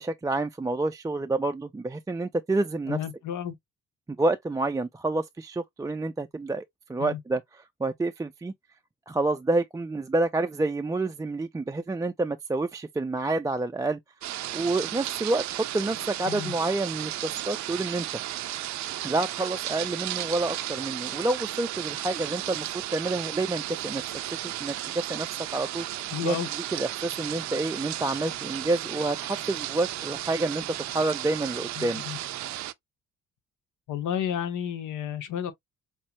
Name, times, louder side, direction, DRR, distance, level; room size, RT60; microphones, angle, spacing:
voice 1, 0.0-3.0 4.2-7.4 7.8-8.5 9.1-14.0 14.5-18.2 19.0-22.7 22.9-24.0 24.4-25.3 25.5-25.9 26.2-26.4 26.7-32.0, right 2 dB, 10° right, 0.3 m, -28 dB
voice 2, 2.9-3.5 7.0-7.2 16.3-16.5 26.1-26.5 31.8-32.2 33.9-35.5, left 9 dB, 85° left, 0.9 m, -32 dB
sound 1, 14.2-32.7, right 14 dB, 65° right, 0.5 m, -34 dB
sound 2, 27.0-32.6, left 4 dB, 65° left, 2.0 m, -55 dB
5.4 x 2.1 x 2.9 m
cardioid pair, 90°, 30 cm